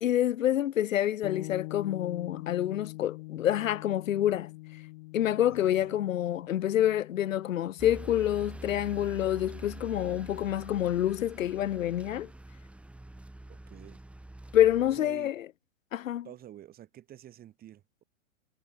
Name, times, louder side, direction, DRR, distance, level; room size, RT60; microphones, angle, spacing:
voice 1, 0.0-4.5 5.1-12.3 14.5-15.5 15.9-16.3, left 12 dB, 80° left, 0.7 m, -27 dB
sound 1, 1.2-10.9, left 24 dB, 45° left, 3.7 m, -45 dB
voice 2, 5.5-6.0 13.5-14.0 15.0-15.3 16.2-18.0, right 12 dB, 25° right, 3.5 m, -49 dB
sound 2, 7.8-15.0, right 1 dB, 5° right, 2.3 m, -45 dB
hypercardioid pair, 130°, 39 cm